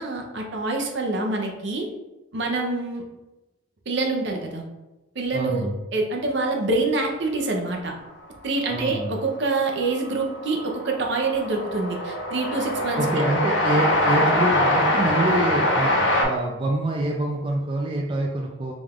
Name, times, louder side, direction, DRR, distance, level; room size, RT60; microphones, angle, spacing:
voice 1, 0.0-1.9 2.3-3.1 3.9-4.6 5.1-7.9 8.4-13.1, right 3 dB, 65° right, 2 dB, 0.7 m, -26 dB
voice 2, 5.3-5.7 8.7-9.1 13.0-18.7, right 1 dB, 25° right, 0 dB, 0.4 m, -26 dB
Train, 8.8-8.9 9.1-16.2, left 1 dB, 90° left, 1.2 m, -23 dB
4.9 x 2.4 x 3.5 m, 1.0 s
head